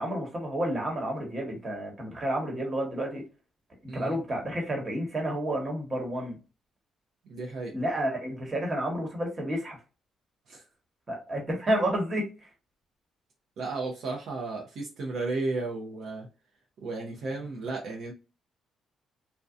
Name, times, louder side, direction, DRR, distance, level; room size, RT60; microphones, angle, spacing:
voice 1, 0.0-3.2 3.9-6.4 7.7-9.8 11.1-12.3, right 1 dB, 30° right, 1.2 m, -30 dB
voice 2, 7.3-7.8 10.5-10.6 13.6-16.3 16.8-18.1, right 3 dB, 70° right, 0.7 m, -34 dB
2.6 x 2.2 x 2.4 m
cardioid pair, 90°, 0 cm